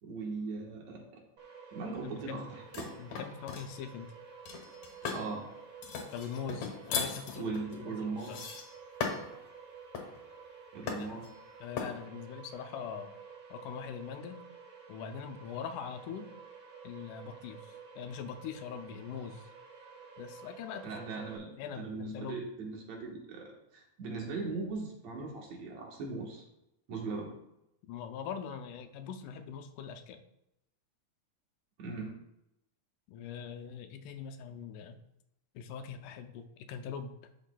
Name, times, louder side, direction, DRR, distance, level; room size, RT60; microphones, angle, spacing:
voice 1, 0.0-1.2 1.7-2.9 5.1-5.5 7.4-8.4 10.7-11.3 20.8-26.4 26.9-27.3 31.8-32.1, right 3 dB, 65° right, 0 dB, 2.5 m, -39 dB
sound 1, 1.4-21.4, right 5 dB, 45° right, 1.5 m, -52 dB
voice 2, 1.9-2.4 3.0-4.1 6.1-8.4 11.0-11.1 11.6-13.1 13.5-14.4 14.9-16.3 16.8-19.5 20.2-20.9 21.6-22.4 27.9-30.2 33.1-35.0 35.6-37.2, left 7 dB, 85° left, 7 dB, 2.1 m, -42 dB
sound 2, 2.7-3.7 4.5-5.3 5.8-9.4 9.9-10.2 10.9-11.3 11.8-12.0, left 6 dB, 65° left, 2.2 m, -37 dB
11.5 x 6.3 x 2.2 m, 0.85 s
omnidirectional pair, 3.6 m